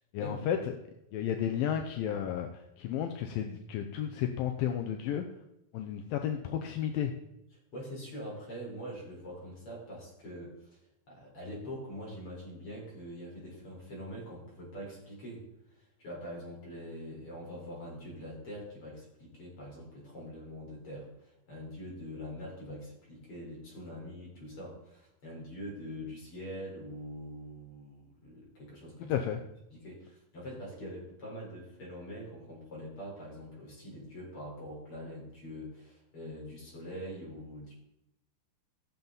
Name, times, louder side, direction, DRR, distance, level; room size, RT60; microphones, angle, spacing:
voice 1, 0.1-0.8 1.1-5.2 5.7-7.1 29.1-29.4, left 9 dB, 80° left, 5 dB, 2.4 m, -32 dB
voice 2, 7.7-10.8 11.1-29.1 29.7-37.7, equal, 35° left, -4 dB, 4.8 m, -44 dB
15.0 x 7.1 x 4.0 m, 0.84 s
omnidirectional pair, 4.3 m